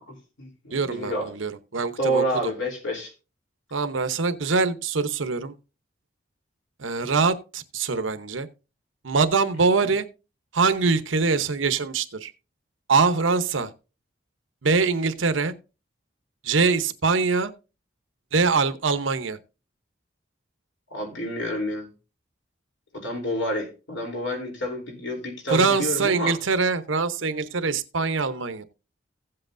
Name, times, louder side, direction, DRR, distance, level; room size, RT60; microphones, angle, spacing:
voice 1, 0.1-1.3 2.0-3.1 9.8-9.9 20.9-21.9 22.9-26.4, right 1 dB, 80° left, 3.4 m, -29 dB
voice 2, 0.7-2.5 3.7-5.5 6.8-8.5 9.0-10.0 10.5-12.3 12.9-13.7 14.6-15.5 16.4-17.5 18.3-19.4 25.5-28.6, right 4 dB, 90° right, 0.9 m, -23 dB
16.0 x 7.7 x 2.6 m
head